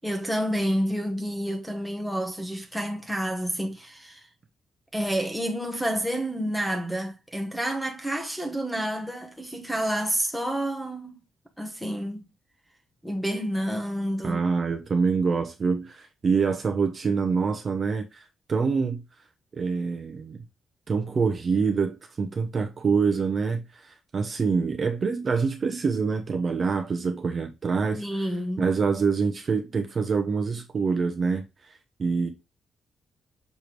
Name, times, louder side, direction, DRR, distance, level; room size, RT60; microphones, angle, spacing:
voice 1, 0.0-4.3 4.9-11.2 11.6-12.2 13.0-14.4 28.0-28.6, equal, ahead, 1.2 m, -29 dB
voice 2, 14.2-19.0 19.5-20.4 20.9-28.0 28.6-31.4 32.0-32.3, right 5 dB, 30° right, 1.0 m, -26 dB
6.9 x 3.4 x 4.5 m
wide cardioid pair, 175°, 0 cm